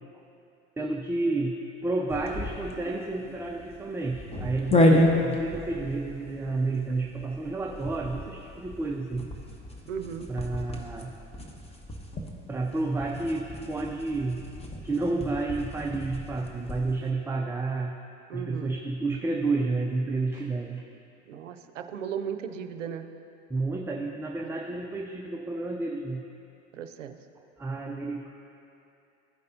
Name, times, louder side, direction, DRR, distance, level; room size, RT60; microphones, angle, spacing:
voice 1, 0.8-1.6 1.8-9.3 10.3-11.1 12.5-14.4 14.8-18.0 18.3-20.8 23.5-26.2 27.6-28.3, right 3 dB, 5° right, 0 dB, 0.4 m, -30 dB
sound 1, 2.1-17.0, left 1 dB, 15° left, 1.0 m, -31 dB
voice 2, 9.9-10.3 18.3-18.7 21.3-23.1 26.7-27.1, right 8 dB, 90° right, 8 dB, 0.6 m, -36 dB
15.5 x 5.3 x 2.7 m, 2.7 s
hypercardioid pair, 85°, 37 cm